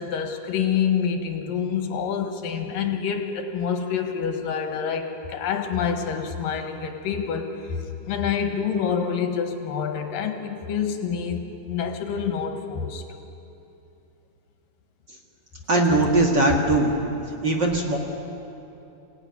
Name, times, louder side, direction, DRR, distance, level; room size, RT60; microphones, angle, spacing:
voice 1, 0.0-13.0, left 7 dB, 80° left, 5 dB, 3.2 m, -27 dB
voice 2, 15.7-16.9 17.4-18.0, right 2 dB, 40° right, 0 dB, 2.1 m, -20 dB
26.5 x 17.0 x 9.8 m, 2.9 s
omnidirectional pair, 3.8 m